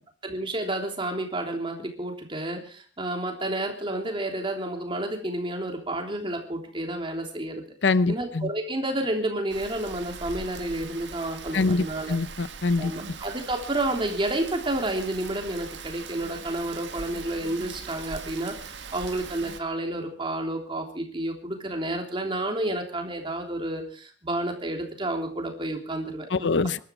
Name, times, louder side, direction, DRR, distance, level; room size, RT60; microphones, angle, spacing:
voice 1, 0.2-7.6 8.1-12.2 12.8-26.6, right 1 dB, 30° right, 3.3 m, -30 dB
voice 2, 7.8-8.5 11.5-12.9 26.3-26.8, left 3 dB, 85° left, 0.7 m, -24 dB
Rain, 9.5-19.6, right 5 dB, 85° right, 1.8 m, -41 dB
23.0 x 12.5 x 4.6 m
head